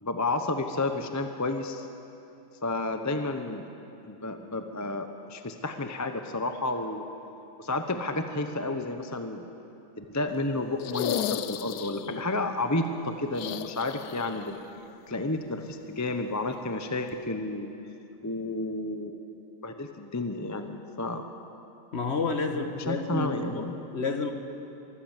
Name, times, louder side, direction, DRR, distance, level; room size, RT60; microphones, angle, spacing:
voice 1, 0.0-1.9 2.6-3.7 4.1-7.0 7.6-9.5 10.0-14.6 15.1-17.7 18.2-19.2 19.6-21.2 22.5-23.8, left 2 dB, 15° left, 6 dB, 0.6 m, -31 dB
sound 1, 10.8-12.2 13.3-14.5 14.8-14.9 16.5-16.6, left 11 dB, 75° left, 1.1 m, -34 dB
voice 2, 21.9-24.3, left 4 dB, 45° left, 6 dB, 1.5 m, -30 dB
24.0 x 14.5 x 7.4 m, 2.8 s
omnidirectional pair, 1.7 m